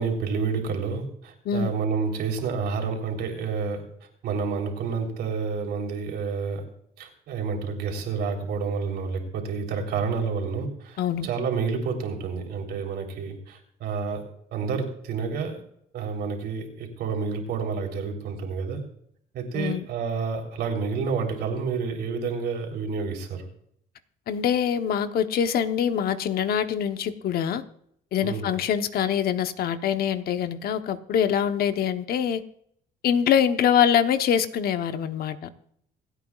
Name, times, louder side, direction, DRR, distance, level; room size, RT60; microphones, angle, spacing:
voice 1, 0.0-3.8 4.2-6.6 7.0-14.2 14.5-15.6 15.9-18.8 19.3-23.4 28.2-28.5, right 5 dB, 75° right, 3 dB, 3.6 m, -29 dB
voice 2, 11.0-11.3 19.5-19.9 24.3-27.6 28.1-32.4 33.0-35.5, left 8 dB, 65° left, 9 dB, 1.0 m, -24 dB
27.0 x 9.2 x 2.4 m, 0.69 s
cardioid pair, 110°, 17 cm